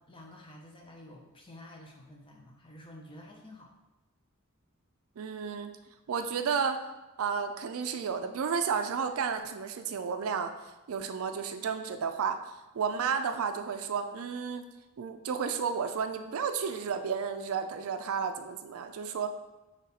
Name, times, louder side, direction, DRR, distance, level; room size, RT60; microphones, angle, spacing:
voice 1, 0.0-3.7, left 1 dB, 25° left, 0 dB, 0.6 m, -50 dB
voice 2, 5.2-5.7 6.1-6.8 7.2-10.5 10.9-12.4 12.7-14.6 15.0-19.3, right 6 dB, 70° right, 8 dB, 0.4 m, -32 dB
4.1 x 3.1 x 4.0 m, 1.1 s
head